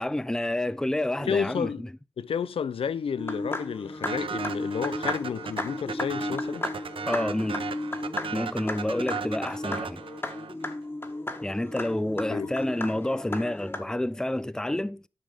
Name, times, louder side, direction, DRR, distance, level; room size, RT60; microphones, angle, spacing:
voice 1, 0.0-1.7 7.1-7.6 8.3-10.0 11.4-15.0, left 1 dB, 5° left, 0.5 m, -29 dB
voice 2, 1.2-1.8 2.2-6.7 12.3-12.5, left 7 dB, 80° left, 0.5 m, -31 dB
sound 1, 3.2-13.8, left 1 dB, 25° left, 1.7 m, -34 dB
sound 2, 4.1-10.7, right 6 dB, 70° right, 0.7 m, -36 dB
10.5 x 6.2 x 4.9 m
cardioid pair, 55°, 9 cm